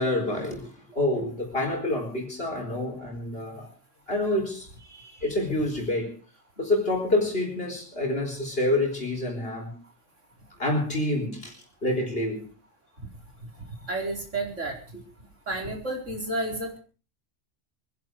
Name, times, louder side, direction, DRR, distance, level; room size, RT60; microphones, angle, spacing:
voice 1, 0.0-3.7 4.1-6.1 6.6-9.8 10.6-11.5 11.8-12.4, left 1 dB, 50° left, 1 dB, 4.5 m, -27 dB
voice 2, 13.9-14.8 15.5-16.8, right 2 dB, 80° right, 1 dB, 4.9 m, -31 dB
24.5 x 11.5 x 4.8 m, 0.37 s
omnidirectional pair, 1.3 m